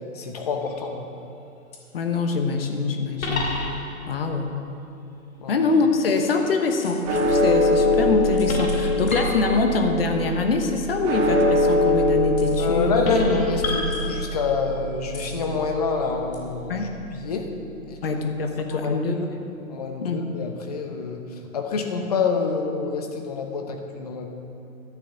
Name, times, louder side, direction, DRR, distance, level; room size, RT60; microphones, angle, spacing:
voice 1, 0.1-1.0 5.4-5.6 12.6-17.5 17.9-18.0 18.7-19.3 19.7-21.2 21.5-24.3, left 4 dB, 25° left, 4 dB, 0.9 m, -27 dB
sound 1, 0.6-1.0 1.7-1.8 3.2-4.1 6.8-7.3 8.4-10.0 12.4-12.7 13.0-14.6 15.1-15.4 16.3-16.4, left 1 dB, 70° left, 2.6 m, -30 dB
voice 2, 1.9-3.5 4.1-4.5 5.5-12.9 16.7-16.9 18.0-19.3 20.0-20.2, left 4 dB, 45° left, 5 dB, 1.2 m, -24 dB
sound 2, 7.0-17.5, left 1 dB, 25° right, 2.3 m, -24 dB
11.5 x 6.4 x 9.0 m, 2.7 s
hypercardioid pair, 160°, 43 cm